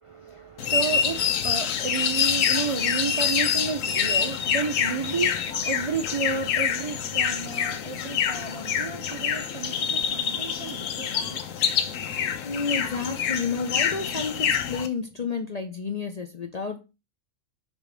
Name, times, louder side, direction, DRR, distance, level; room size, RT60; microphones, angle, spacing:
voice 1, 0.0-11.4, right 5 dB, 55° right, 0.3 m, -32 dB
sound 1, 0.6-14.9, left 8 dB, 75° left, 1.1 m, -26 dB
voice 2, 12.4-16.8, left 4 dB, 50° left, 0.5 m, -30 dB
5.1 x 3.8 x 4.8 m
omnidirectional pair, 1.4 m